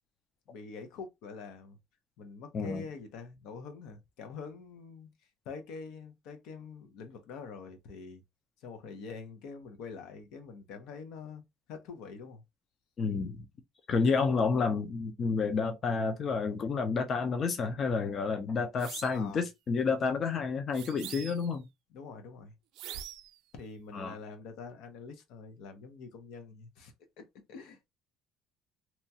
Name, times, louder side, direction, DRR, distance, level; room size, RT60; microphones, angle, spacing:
voice 1, 0.5-1.8 2.2-5.1 5.4-8.2 8.6-11.4 11.7-12.4 19.1-19.4 21.9-22.5 23.5-27.9, left 5 dB, 80° left, 0.7 m, -45 dB
voice 2, 13.0-13.4 13.9-21.6 23.9-24.2, left 4 dB, 35° left, 0.5 m, -30 dB
sound 1, 18.8-19.3 20.7-21.6 22.8-23.4, right 12 dB, 75° right, 0.4 m, -44 dB
2.9 x 2.3 x 2.7 m
cardioid pair, 160°, 0 cm